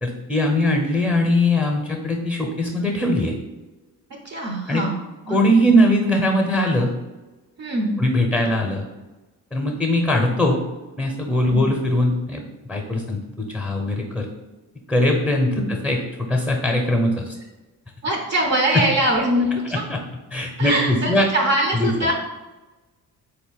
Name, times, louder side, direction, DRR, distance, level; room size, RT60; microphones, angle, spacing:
voice 1, 0.0-3.3 4.7-4.8 5.3-6.9 8.0-8.9 9.5-10.6 11.0-14.3 14.9-17.3 18.7-18.8 19.9-20.0 20.3-21.3 21.7-21.9, left 1 dB, ahead, 1 dB, 0.8 m, -21 dB
voice 2, 4.2-4.9 5.3-5.4 7.6-8.0 11.5-11.7 15.6-15.7 18.0-19.8 20.6-22.1, right 1 dB, 40° right, 1 dB, 0.8 m, -22 dB
3.9 x 2.9 x 4.0 m, 1.2 s
supercardioid pair, 55°, 40 cm